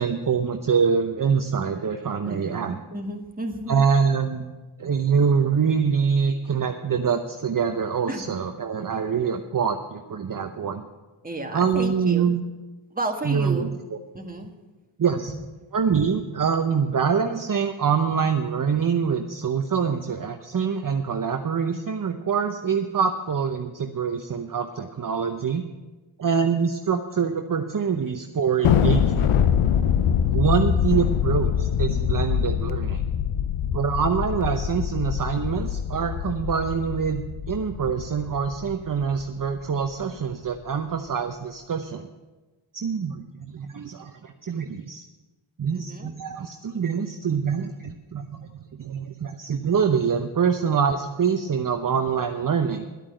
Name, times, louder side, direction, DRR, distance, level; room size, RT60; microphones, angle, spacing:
voice 1, 0.0-2.8 3.7-4.5 4.8-10.8 11.5-12.4 13.2-13.7 15.0-15.3 15.7-25.6 26.2-29.4 30.3-33.0 33.7-37.2 37.5-42.1 42.7-45.0 45.6-52.8, right 6 dB, 40° right, 6 dB, 0.8 m, -25 dB
voice 2, 2.2-3.8 8.1-8.3 11.2-12.3 12.9-13.7 14.1-14.5 15.3-15.4 45.7-46.1, right 2 dB, 15° right, 3 dB, 1.8 m, -32 dB
Thunder, 28.6-39.3, left 8 dB, 80° left, 0.8 m, -24 dB
11.0 x 8.8 x 7.7 m, 1.2 s
cardioid pair, 60°, 50 cm